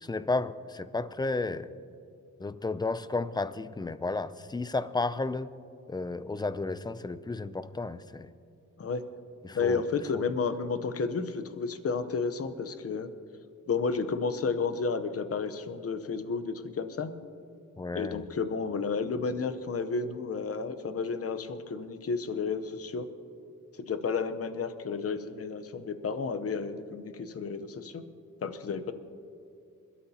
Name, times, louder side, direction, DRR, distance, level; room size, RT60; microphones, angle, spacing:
voice 1, 0.0-1.7 2.4-5.5 5.9-8.3 9.4-9.8 10.1-10.2 17.8-18.3, left 3 dB, 15° left, 14 dB, 0.4 m, -32 dB
voice 2, 9.5-13.1 13.7-17.1 17.9-23.0 23.8-28.0 28.4-28.9, left 5 dB, 45° left, 10 dB, 0.9 m, -32 dB
28.5 x 13.0 x 2.9 m, 2.5 s
wide cardioid pair, 140°, 32 cm